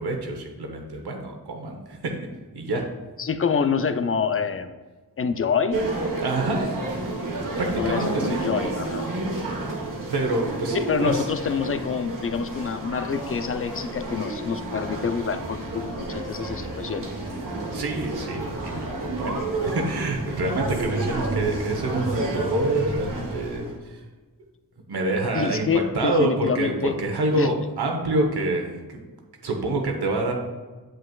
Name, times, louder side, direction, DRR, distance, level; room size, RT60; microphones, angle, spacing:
voice 1, 0.0-2.1 2.5-2.8 6.2-7.1 7.4-8.4 10.1-11.3 17.7-24.0 24.9-29.0 29.4-30.3, right 2 dB, 90° right, 2 dB, 1.1 m, -27 dB
voice 2, 3.2-4.7 5.2-5.8 7.8-9.1 10.7-17.1 25.3-27.0 27.3-27.5, left 6 dB, 35° left, 9 dB, 0.5 m, -26 dB
sound 1, 5.7-23.7, right 2 dB, 55° right, 1.3 m, -30 dB
8.0 x 7.5 x 2.4 m, 1.3 s
cardioid pair, 55°, 38 cm